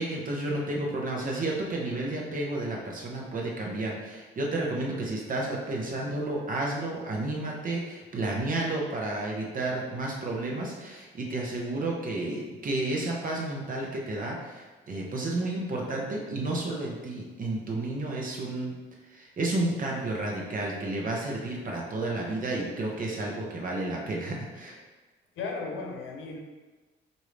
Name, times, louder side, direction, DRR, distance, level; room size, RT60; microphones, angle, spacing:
voice 1, 0.0-18.7 19.1-24.8, right 2 dB, 45° right, -2 dB, 1.0 m, -31 dB
voice 2, 25.4-26.4, left 4 dB, 80° left, 0 dB, 0.8 m, -36 dB
4.5 x 2.7 x 3.2 m, 1.3 s
cardioid pair, 90°, 20 cm